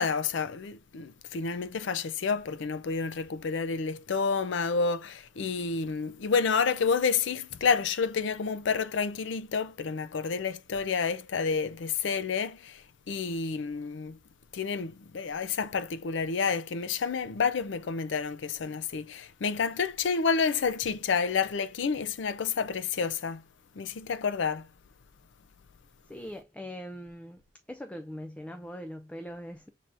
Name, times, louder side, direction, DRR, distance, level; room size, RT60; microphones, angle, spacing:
voice 1, 0.0-14.2 14.5-23.4 23.8-24.7, left 5 dB, 75° left, 0.5 m, -29 dB
voice 2, 26.1-27.4 27.7-29.7, equal, 5° left, 0.3 m, -41 dB
5.7 x 3.4 x 2.5 m
head